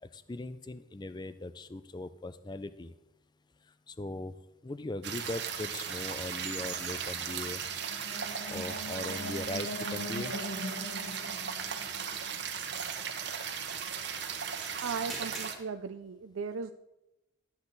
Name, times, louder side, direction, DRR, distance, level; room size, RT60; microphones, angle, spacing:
voice 1, 0.0-2.9 3.9-4.4 4.6-7.6 8.5-10.3, left 2 dB, 20° left, 13 dB, 0.4 m, -39 dB
sound 1, 5.0-15.5, right 7 dB, 55° right, 1.0 m, -37 dB
sound 2, 7.7-12.8, left 1 dB, 55° left, 0.8 m, -41 dB
sound 3, 13.3-15.6, right 1 dB, ahead, 1.6 m, -52 dB
voice 2, 14.8-16.7, right 5 dB, 85° right, 8 dB, 0.5 m, -37 dB
12.5 x 8.0 x 4.0 m, 0.93 s
head